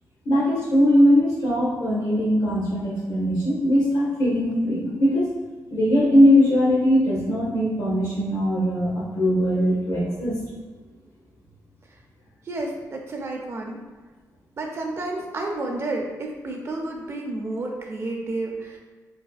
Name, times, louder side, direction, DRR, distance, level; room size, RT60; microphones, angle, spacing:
voice 1, 0.2-5.3 5.7-10.4, equal, 80° left, -5 dB, 1.3 m, -20 dB
voice 2, 12.4-13.8 14.6-18.8, right 2 dB, 40° right, 1 dB, 0.5 m, -30 dB
3.4 x 3.1 x 2.3 m, 1.4 s
wide cardioid pair, 130°, 7 cm